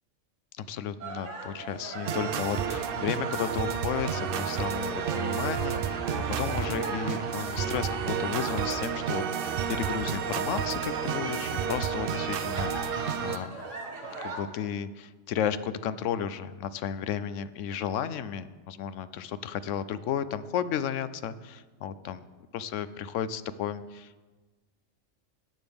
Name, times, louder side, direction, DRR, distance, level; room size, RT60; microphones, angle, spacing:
voice 1, 0.6-13.6 14.2-22.2 22.5-24.2, left 8 dB, 75° left, 14 dB, 0.9 m, -33 dB
sound 1, 1.0-14.4, right 2 dB, 80° right, 2.1 m, -39 dB
sound 2, 2.0-13.4, right 7 dB, 60° right, 0.6 m, -31 dB
13.5 x 9.6 x 3.5 m, 1.2 s
omnidirectional pair, 1.3 m